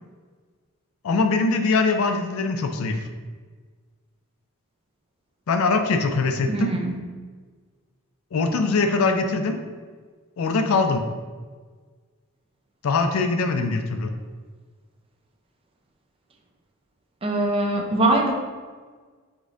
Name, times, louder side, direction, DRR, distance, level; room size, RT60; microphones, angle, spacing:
voice 1, 1.0-3.1 5.5-6.7 8.3-9.6 10.4-11.0 12.8-14.1, left 3 dB, 80° left, 6 dB, 0.4 m, -22 dB
voice 2, 6.5-7.0 17.2-18.3, right 2 dB, 25° right, 2 dB, 0.5 m, -22 dB
5.1 x 2.6 x 3.7 m, 1.5 s
head